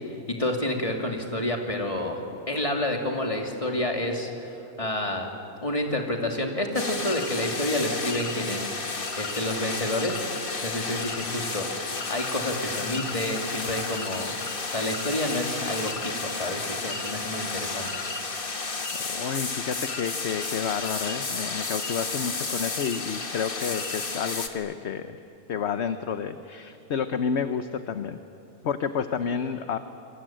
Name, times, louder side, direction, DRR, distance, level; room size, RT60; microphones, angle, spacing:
voice 1, 0.1-5.3 5.6-8.8 9.2-10.2 10.6-11.7 12.1-14.3 14.6-18.0, left 1 dB, 20° left, 2 dB, 2.8 m, -29 dB
sound 1, 6.7-24.5, left 3 dB, 35° left, 1.7 m, -32 dB
voice 2, 18.9-25.2 25.5-28.2 28.6-29.8, left 7 dB, 50° left, 9 dB, 1.0 m, -30 dB
27.5 x 23.5 x 9.0 m, 2.7 s
omnidirectional pair, 1.6 m